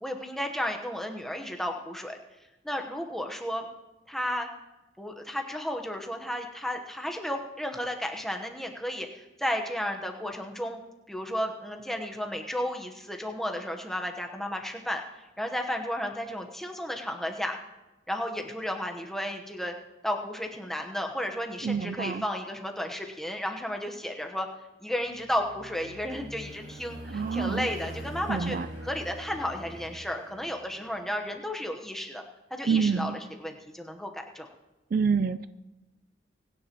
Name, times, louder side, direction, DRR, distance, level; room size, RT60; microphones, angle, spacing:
voice 1, 0.0-2.2 2.6-3.7 4.1-4.5 5.0-10.8 11.1-15.0 15.4-17.6 18.1-19.7 20.0-24.5 24.8-28.6 28.8-32.2 32.5-33.1 33.4-34.5, equal, ahead, 2 dB, 1.0 m, -33 dB
voice 2, 21.6-22.2 27.1-27.7 28.3-28.7 32.7-33.1 34.9-35.5, right 5 dB, 50° right, 13 dB, 0.3 m, -27 dB
sound 1, 25.1-30.9, equal, 70° right, 4.6 m, -42 dB
24.0 x 9.9 x 3.0 m, 1.0 s
head